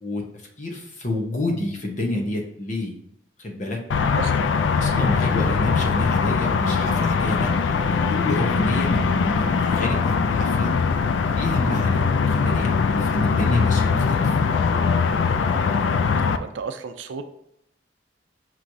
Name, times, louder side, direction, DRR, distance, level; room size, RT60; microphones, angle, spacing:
voice 1, 0.6-2.9 3.4-3.8 4.8-7.5 7.9-10.7 11.3-14.4, left 1 dB, 40° left, 1 dB, 0.8 m, -28 dB
sound 1, 3.9-16.4, left 5 dB, 90° left, 0.3 m, -21 dB
voice 2, 3.9-4.5 4.8-5.1 11.7-12.0 16.3-17.2, right 5 dB, 90° right, 8 dB, 0.5 m, -35 dB
6.0 x 3.1 x 2.6 m, 0.76 s
head